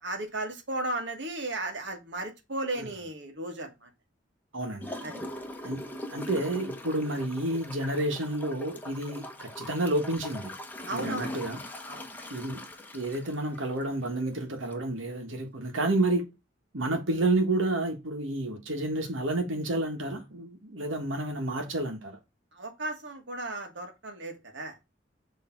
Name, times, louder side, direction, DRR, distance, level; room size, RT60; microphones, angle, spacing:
voice 1, 0.0-3.9 5.0-5.2 10.9-11.3 11.9-12.1 22.5-24.8, right 2 dB, 65° right, 1.7 m, -35 dB
voice 2, 4.5-4.9 5.6-10.5 10.9-11.6 12.3-12.6 12.9-16.3 16.7-22.2, right 2 dB, 85° right, 1.6 m, -30 dB
Gurgling / Toilet flush, 4.8-14.2 14.7-14.8, left 1 dB, 10° left, 0.9 m, -41 dB
6.5 x 3.3 x 4.5 m
head